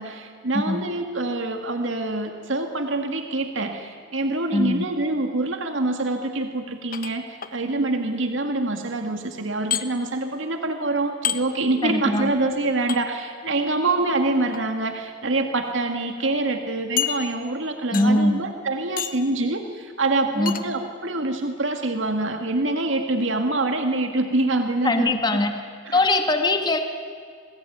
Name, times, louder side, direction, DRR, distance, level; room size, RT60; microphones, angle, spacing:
voice 1, 0.0-25.4 25.9-26.0, right 2 dB, 80° right, 5 dB, 2.0 m, -25 dB
voice 2, 4.5-4.8 11.8-12.3 17.9-18.4 20.4-20.6 24.8-25.5 25.9-26.8, left 2 dB, 20° left, 5 dB, 1.7 m, -21 dB
sound 1, 6.9-7.5 9.7-9.8 11.2-11.4 12.9-13.0 14.3-14.6 15.4-15.5 15.8-15.9 17.0-17.6 17.9-18.3 19.0-19.3 20.5-20.7, left 10 dB, 45° left, 1.2 m, -28 dB
27.5 x 20.5 x 9.4 m, 2.2 s
head